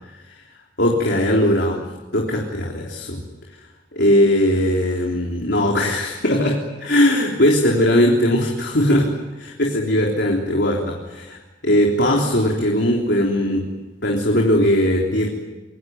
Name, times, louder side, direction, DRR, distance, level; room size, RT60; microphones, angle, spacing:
voice 1, 0.8-1.8 2.1-3.2 3.9-11.4 11.6-13.7 14.0-15.3, left 1 dB, 70° left, 0 dB, 3.7 m, -19 dB
26.5 x 23.0 x 9.6 m, 1.1 s
head